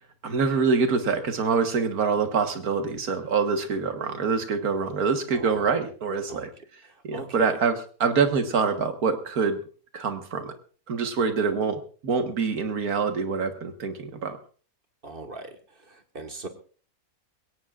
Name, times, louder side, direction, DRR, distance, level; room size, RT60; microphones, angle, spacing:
voice 1, 0.2-6.5 7.0-9.6 9.9-10.5 10.9-14.4, right 5 dB, 85° right, 7 dB, 1.9 m, -25 dB
voice 2, 5.3-5.7 6.3-6.5 6.8-7.6 15.0-16.5, right 2 dB, 40° right, 5 dB, 1.7 m, -40 dB
21.5 x 17.5 x 2.5 m, 0.41 s
omnidirectional pair, 1.5 m